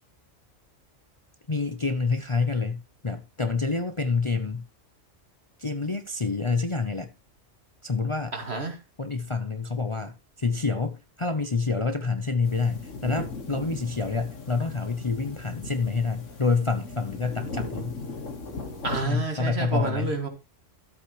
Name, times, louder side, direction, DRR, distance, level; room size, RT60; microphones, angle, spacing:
voice 1, 1.5-4.7 5.6-7.1 7.8-8.3 9.0-18.0 18.9-20.1, left 4 dB, 30° left, 0.8 m, -27 dB
voice 2, 8.3-8.8 18.8-20.3, right 4 dB, 55° right, 2.6 m, -29 dB
sound 1, 12.4-19.0, left 3 dB, 90° left, 2.1 m, -37 dB
13.0 x 8.2 x 3.1 m
omnidirectional pair, 1.3 m